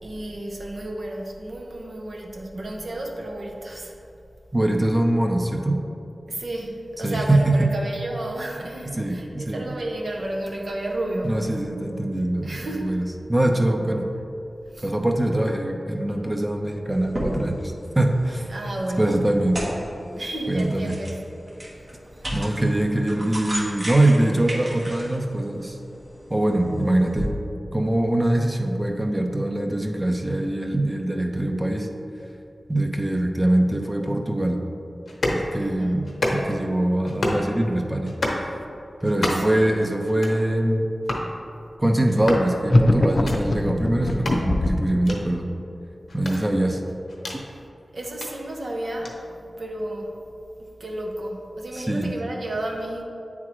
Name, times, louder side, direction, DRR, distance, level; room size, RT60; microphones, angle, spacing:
voice 1, 0.0-4.0 6.3-11.7 12.4-13.0 14.7-14.9 18.5-19.2 20.1-21.2 22.2-22.4 35.5-36.1 39.3-39.8 46.3-46.5 47.4-47.6 47.9-50.2 50.6-53.0, right 1 dB, 65° right, 0 dB, 0.8 m, -32 dB
voice 2, 4.5-5.8 7.0-7.7 8.8-9.6 11.2-13.0 13.3-14.1 14.8-18.5 19.0-19.6 20.5-21.0 22.3-25.8 26.3-27.3 27.7-31.9 32.7-34.6 35.3-38.1 39.0-40.9 41.8-45.5 46.1-46.8 51.7-52.1, right 1 dB, 25° right, 3 dB, 0.6 m, -23 dB
sound 1, 16.9-27.3, equal, 50° right, 1.3 m, -35 dB
sound 2, 35.1-35.4 36.0-36.6 37.0-37.5 38.0-38.4 39.0-39.6 40.0-40.4 41.0-41.3 42.0-42.5 43.1-43.4 44.1-44.4 45.0-45.2 46.1-47.4 48.0-48.3 49.0-49.1, left 1 dB, 75° left, 0.9 m, -29 dB
sound 3, 42.7-44.9, left 1 dB, 50° left, 0.5 m, -20 dB
8.6 x 3.6 x 3.1 m, 2.7 s
cardioid pair, 50°, 0 cm